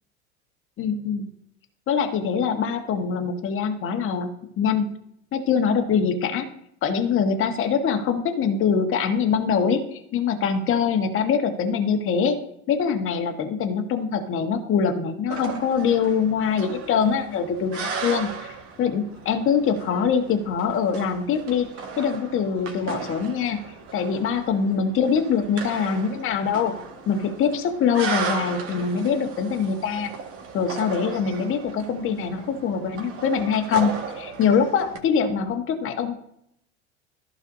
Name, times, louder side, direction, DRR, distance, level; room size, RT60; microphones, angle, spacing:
voice 1, 0.8-1.3 1.9-4.3 4.6-4.9 5.3-6.5 6.8-12.4 12.7-21.7 22.0-23.6 23.9-26.8 27.1-30.1 30.5-36.2, left 6 dB, 35° left, 5 dB, 1.5 m, -23 dB
sound 1, 15.3-35.0, right 5 dB, 40° right, 1.9 m, -36 dB
14.5 x 5.7 x 2.7 m, 0.74 s
figure-of-eight pair, 75°, 35 cm